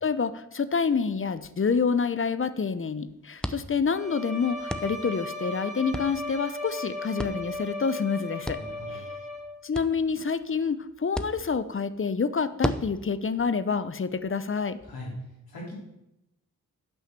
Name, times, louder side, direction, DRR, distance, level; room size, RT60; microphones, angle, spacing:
voice 1, 0.0-8.6 8.9-9.0 9.6-14.8, left 5 dB, 35° left, 14 dB, 0.8 m, -27 dB
sound 1, 0.8-14.9, equal, ahead, 0.8 m, -40 dB
Bowed string instrument, 3.9-9.7, left 2 dB, 20° right, 2.8 m, -36 dB
voice 2, 8.6-9.1 14.8-15.1 15.5-15.7, left 1 dB, 75° left, -3 dB, 3.9 m, -40 dB
9.2 x 5.6 x 6.8 m, 0.85 s
supercardioid pair, 45°, 37 cm